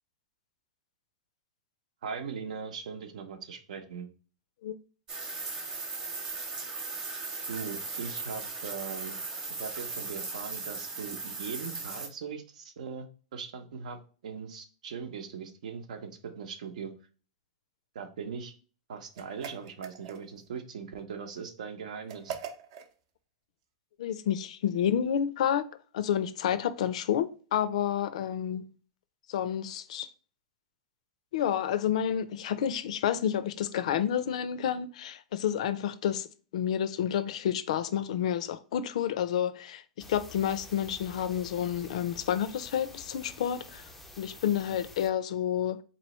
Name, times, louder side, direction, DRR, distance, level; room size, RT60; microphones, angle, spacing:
voice 1, 2.0-4.1 7.5-9.2 9.6-16.9 17.9-18.5 18.9-22.4 44.7-44.8, right 6 dB, 80° right, 0.8 m, -40 dB
sound 1, 5.1-12.1, right 3 dB, 20° right, 0.9 m, -37 dB
sound 2, 19.1-20.5 22.1-22.9, right 8 dB, 50° right, 0.6 m, -42 dB
voice 2, 24.0-25.7 25.9-28.7 29.3-30.1 31.3-43.8 44.2-45.8, left 9 dB, 70° left, 0.4 m, -30 dB
sound 3, 40.0-45.1, left 2 dB, 5° left, 0.4 m, -49 dB
4.0 x 3.0 x 3.0 m
supercardioid pair, 165°, 4 cm